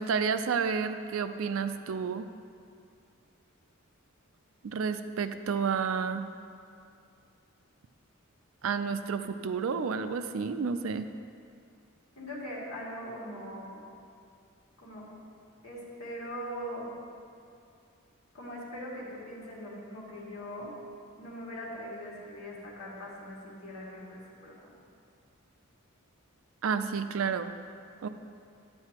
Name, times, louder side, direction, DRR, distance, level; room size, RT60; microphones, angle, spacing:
voice 1, 0.0-2.3 4.6-6.3 8.6-11.1 26.6-27.5 28.0-28.1, right 5 dB, 65° right, 10 dB, 0.4 m, -30 dB
voice 2, 12.2-13.8 14.8-15.1 15.6-16.9 18.3-20.7 21.2-24.5, equal, 70° left, -5 dB, 2.1 m, -41 dB
10.5 x 7.7 x 2.9 m, 2.4 s
head